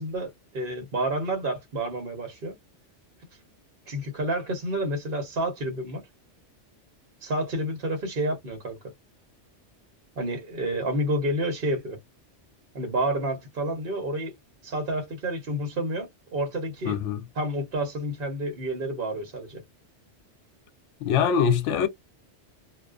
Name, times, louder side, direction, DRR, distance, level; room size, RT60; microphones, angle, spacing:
voice 1, 0.0-2.5 3.9-6.0 7.2-8.8 10.2-12.0 12.7-14.3 14.6-17.0 17.4-19.6, right 1 dB, 55° right, 0.9 m, -29 dB
voice 2, 16.9-17.2 21.0-21.9, left 7 dB, 85° left, 0.9 m, -23 dB
2.4 x 2.3 x 2.3 m
omnidirectional pair, 1.2 m